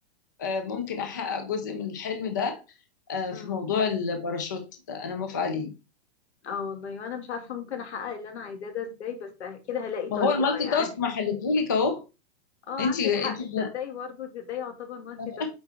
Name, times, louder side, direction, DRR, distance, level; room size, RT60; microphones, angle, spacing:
voice 1, 0.4-2.6 3.1-4.6 4.9-5.7 10.1-12.0 12.8-13.7 15.2-15.5, left 5 dB, 20° left, 5 dB, 0.4 m, -28 dB
voice 2, 6.4-10.9 12.7-15.5, left 7 dB, 85° left, 6 dB, 2.1 m, -35 dB
8.1 x 4.6 x 3.4 m, 0.29 s
supercardioid pair, 180°, 33 cm